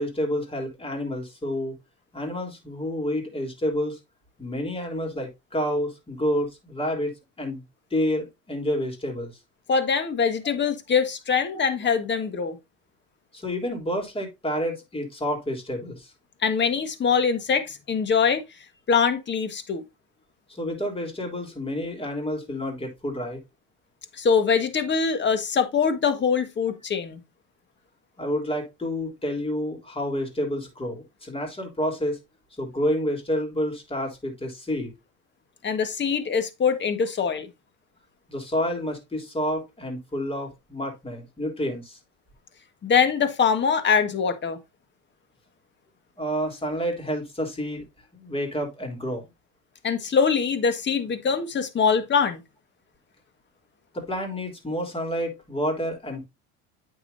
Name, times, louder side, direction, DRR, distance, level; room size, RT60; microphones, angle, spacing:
voice 1, 0.0-1.8 2.1-4.0 4.4-7.6 7.9-9.3 13.3-16.1 20.5-23.4 28.2-32.2 32.6-34.9 38.3-42.0 46.2-47.9 48.1-49.2 53.9-56.3, equal, 15° left, 3.6 m, -29 dB
voice 2, 9.7-12.6 16.4-18.4 18.9-19.8 24.2-27.2 35.6-37.5 42.8-44.6 49.8-52.4, left 6 dB, 35° left, 1.7 m, -23 dB
8.7 x 6.3 x 2.7 m
supercardioid pair, 95°, 33 cm